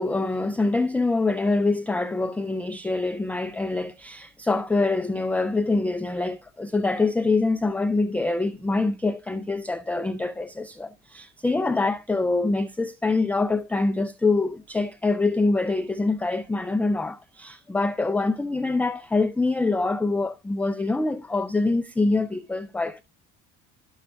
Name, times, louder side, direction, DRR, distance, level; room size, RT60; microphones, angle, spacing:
voice 1, 0.0-23.0, left 3 dB, 5° left, 0.3 m, -25 dB
12.5 x 6.3 x 2.2 m
cardioid pair, 100°, 32 cm